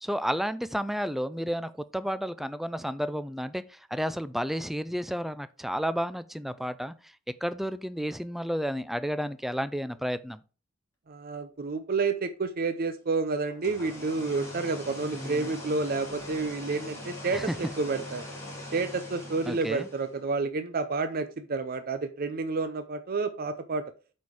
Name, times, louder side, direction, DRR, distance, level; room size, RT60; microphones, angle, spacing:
voice 1, 0.0-3.6 3.9-6.9 7.4-10.4 15.1-15.5 17.3-17.6 19.5-19.9, equal, ahead, 0.4 m, -31 dB
voice 2, 11.1-18.3 18.7-23.8, right 4 dB, 45° right, 0.6 m, -30 dB
sound 1, 13.4-20.2, left 1 dB, 15° left, 3.4 m, -41 dB
8.3 x 4.3 x 4.8 m
head